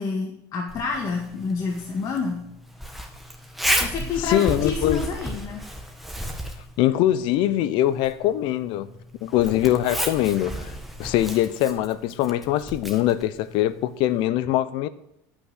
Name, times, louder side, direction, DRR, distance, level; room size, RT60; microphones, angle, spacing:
voice 1, 0.0-2.4 3.8-5.6, left 5 dB, 40° left, 2.0 m, -28 dB
Zipper (clothing), 0.7-14.2, equal, ahead, 1.7 m, -33 dB
voice 2, 4.2-5.0 6.8-8.9 9.2-10.7 11.0-14.9, left 13 dB, 65° left, 0.8 m, -22 dB
12.5 x 6.0 x 8.1 m
supercardioid pair, 110°, 9 cm